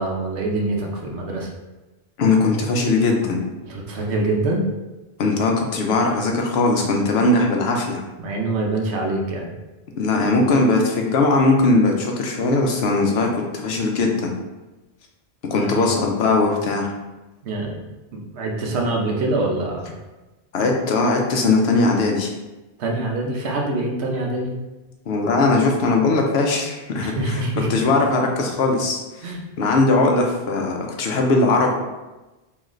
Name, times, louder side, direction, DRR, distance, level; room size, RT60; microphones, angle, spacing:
voice 1, 0.0-1.5 3.6-4.6 8.2-9.5 15.5-15.9 17.4-17.8 18.1-19.9 22.8-24.5 27.0-27.7 29.2-29.4, right 2 dB, 90° right, 0 dB, 1.0 m, -25 dB
voice 2, 2.2-3.4 5.2-8.0 10.0-14.3 15.5-16.9 20.5-22.3 25.1-27.4 27.7-31.7, left 3 dB, 75° left, 1 dB, 0.9 m, -19 dB
3.7 x 3.1 x 3.1 m, 1.1 s
omnidirectional pair, 1.1 m